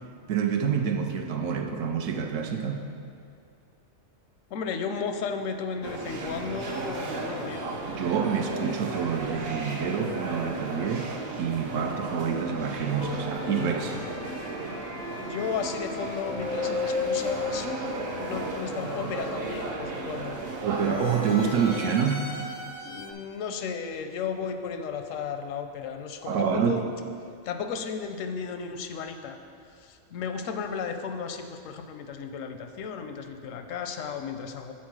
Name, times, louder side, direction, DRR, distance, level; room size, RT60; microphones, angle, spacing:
voice 1, 0.3-2.8 7.9-11.1 11.4-14.0 20.6-22.3 26.3-26.8, right 7 dB, 80° right, 5 dB, 1.0 m, -27 dB
voice 2, 4.5-7.8 15.3-17.7 18.1-20.4 22.8-26.9 27.4-29.4 29.8-34.7, left 6 dB, 85° left, 6 dB, 1.0 m, -34 dB
sound 1, 5.8-21.8, right 3 dB, 55° right, 0.8 m, -35 dB
sound 2, 13.0-20.1 20.7-23.1, left 4 dB, 50° left, 0.5 m, -36 dB
7.3 x 4.2 x 6.0 m, 2.3 s
omnidirectional pair, 1.3 m